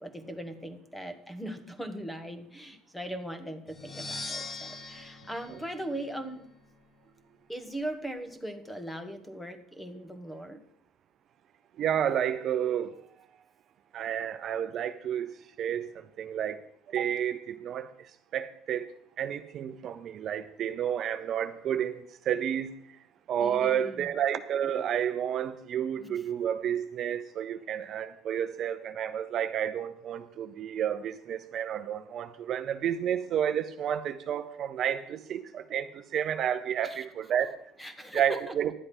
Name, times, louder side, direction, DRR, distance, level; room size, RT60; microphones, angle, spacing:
voice 1, 0.0-6.5 7.5-10.6 23.4-24.1 26.0-26.1 36.8-37.0 37.8-38.5, right 1 dB, 5° left, 1.3 m, -39 dB
sound 1, 3.7-6.5, left 3 dB, 30° left, 1.3 m, -41 dB
voice 2, 11.8-13.0 13.9-16.6 16.9-18.9 19.2-22.7 23.3-37.6 38.1-38.7, right 9 dB, 50° right, 0.6 m, -31 dB
11.0 x 7.9 x 5.5 m
supercardioid pair, 100°, 0 cm